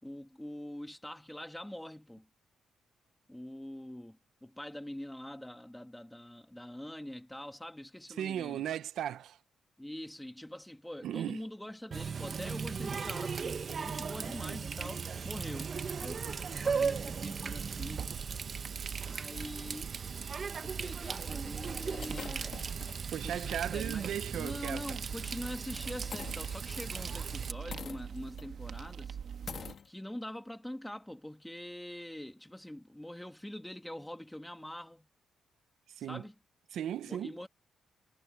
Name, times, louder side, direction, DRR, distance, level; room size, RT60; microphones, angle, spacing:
voice 1, 0.0-2.3 3.3-8.6 9.8-18.1 19.1-19.9 20.6-22.6 23.2-24.1 24.3-29.2 29.8-35.1 36.1-36.3 37.0-37.5, left 1 dB, 5° left, 2.1 m, -44 dB
voice 2, 8.2-9.4 11.0-11.4 14.5-14.6 23.1-24.8 36.0-36.2 36.7-37.3, right 10 dB, 80° right, 0.8 m, -36 dB
Water tap faucet, 11.9-27.5, right 5 dB, 40° right, 0.9 m, -38 dB
sound 1, 17.3-29.7, right 7 dB, 60° right, 1.4 m, -43 dB
sound 2, 20.1-20.2 21.0-21.1 21.6-23.0 23.4-23.5 23.9-24.1 26.1-26.9 27.7-28.5 28.8-28.9 29.5-29.9, left 6 dB, 50° left, 1.8 m, -45 dB
cardioid pair, 125°, 0 cm